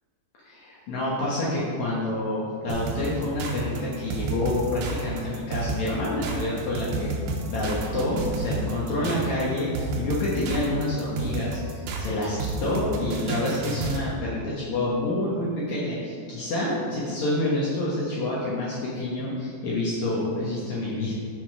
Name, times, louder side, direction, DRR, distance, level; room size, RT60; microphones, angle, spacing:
voice 1, 0.4-7.1 7.5-21.1, left 1 dB, 80° left, -7 dB, 1.6 m, -28 dB
sound 1, 2.7-14.1, right 3 dB, 80° right, 2.9 m, -31 dB
7.3 x 6.1 x 5.0 m, 2.3 s
omnidirectional pair, 5.1 m